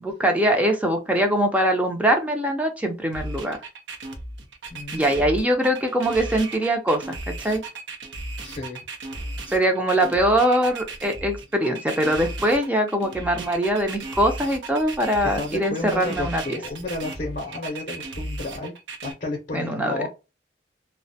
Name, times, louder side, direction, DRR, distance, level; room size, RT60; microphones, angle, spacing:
voice 1, 0.2-3.6 4.9-7.2 7.4-7.6 9.5-16.6 19.5-20.0, right 1 dB, 10° right, 4 dB, 0.4 m, -22 dB
sound 1, 3.1-19.1, right 2 dB, 85° right, 0.6 m, -35 dB
voice 2, 4.7-5.2 8.4-8.8 15.2-18.7 19.0-20.1, left 2 dB, 45° left, 1 dB, 0.5 m, -32 dB
2.4 x 2.1 x 2.6 m, 0.28 s
head